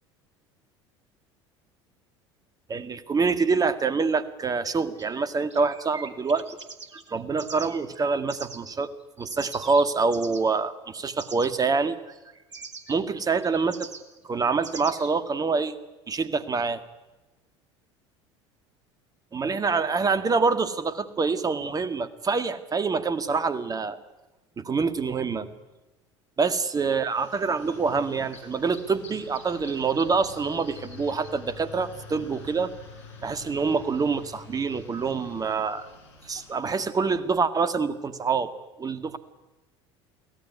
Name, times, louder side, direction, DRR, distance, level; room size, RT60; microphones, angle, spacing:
voice 1, 2.7-6.4 7.1-8.9 9.2-12.0 12.9-13.9 14.2-15.8 16.1-16.8 19.3-24.0 24.6-25.5 26.4-32.7 33.2-35.9 36.2-38.5 38.8-39.2, right 4 dB, 25° right, 11 dB, 1.9 m, -26 dB
sound 1, 5.0-8.6 9.0-10.5 11.2-11.6 12.1-15.1, right 4 dB, 85° right, 2.0 m, -43 dB
sound 2, 27.1-37.0, left 4 dB, 75° left, 5.9 m, -46 dB
24.0 x 17.0 x 9.6 m, 1.1 s
figure-of-eight pair, 70°, 15 cm